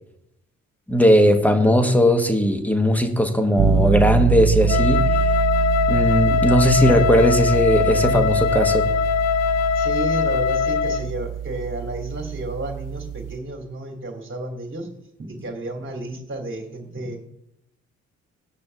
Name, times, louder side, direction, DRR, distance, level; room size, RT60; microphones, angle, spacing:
voice 1, 0.9-5.0 5.9-8.9, equal, 5° left, 6 dB, 1.7 m, -18 dB
sound 1, 3.6-13.4, right 8 dB, 60° right, 1.2 m, -24 dB
Wind instrument woodwind instrument, 4.7-11.1, left 8 dB, 45° left, 0.6 m, -21 dB
voice 2, 9.7-17.2, right 1 dB, 30° right, 2 dB, 3.0 m, -32 dB
16.0 x 9.7 x 2.8 m, 0.82 s
figure-of-eight pair, 45°, 37 cm